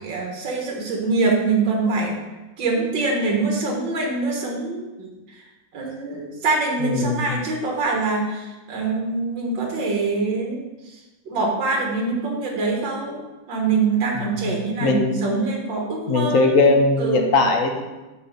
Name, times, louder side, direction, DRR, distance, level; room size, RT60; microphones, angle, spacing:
voice 1, 0.0-2.2 2.6-5.1 5.7-11.0 11.3-13.2 13.5-16.5 17.0-17.2, right 3 dB, 85° right, 0 dB, 2.2 m, -24 dB
voice 2, 6.8-7.3 14.2-14.3 14.8-15.1 16.1-17.8, left 3 dB, 55° left, 3 dB, 1.1 m, -19 dB
6.9 x 4.8 x 5.5 m, 1.1 s
omnidirectional pair, 1.9 m